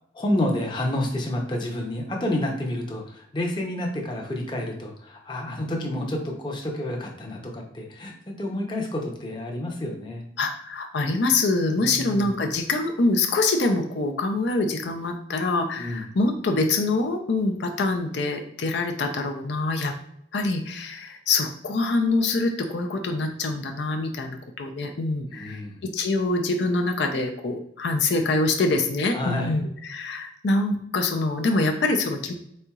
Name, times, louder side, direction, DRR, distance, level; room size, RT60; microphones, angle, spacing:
voice 1, 0.1-10.2 11.7-12.4 15.8-16.0 25.3-25.8 29.1-29.6, left 1 dB, 25° left, 0 dB, 0.7 m, -29 dB
voice 2, 10.4-19.9 20.3-32.3, left 3 dB, 80° left, 4 dB, 0.5 m, -25 dB
4.2 x 3.8 x 2.3 m, 0.73 s
head